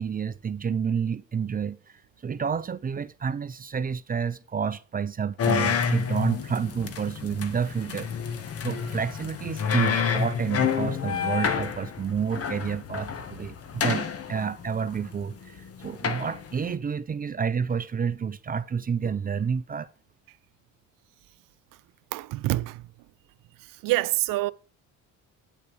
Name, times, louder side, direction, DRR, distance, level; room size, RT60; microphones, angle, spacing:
voice 1, 0.0-8.1 8.6-19.9, right 6 dB, 25° right, 0.7 m, -29 dB
sound 1, 5.4-16.7, left 7 dB, 45° left, 1.5 m, -29 dB
voice 2, 22.1-22.9 23.6-24.5, right 18 dB, 90° right, 0.7 m, -27 dB
9.2 x 8.7 x 6.2 m
cardioid pair, 125°, 32 cm